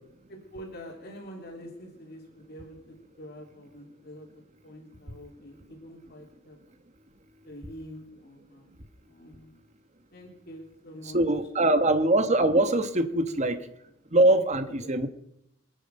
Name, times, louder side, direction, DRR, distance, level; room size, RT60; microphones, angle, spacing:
voice 1, 0.3-6.6 7.4-8.7 9.0-9.5 10.1-11.2 11.5-11.9 13.1-13.4 14.7-14.8, equal, 50° left, 0 dB, 3.2 m, -46 dB
voice 2, 11.1-13.6 14.1-15.1, right 1 dB, 35° right, 9 dB, 1.2 m, -22 dB
26.0 x 9.3 x 5.4 m, 0.81 s
head